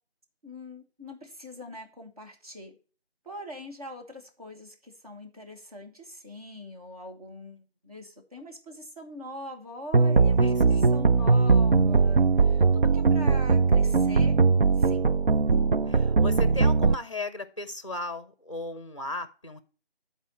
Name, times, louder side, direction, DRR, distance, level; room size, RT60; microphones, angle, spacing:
voice 1, 0.4-2.8 3.2-14.4 14.7-15.0, left 1 dB, 35° right, 1 dB, 1.6 m, -43 dB
sound 1, 9.9-16.9, right 4 dB, 55° right, 0.4 m, -20 dB
voice 2, 10.4-10.9 15.9-19.6, left 2 dB, 30° left, 12 dB, 0.7 m, -36 dB
10.5 x 4.4 x 5.4 m, 0.37 s
figure-of-eight pair, 165°, 32 cm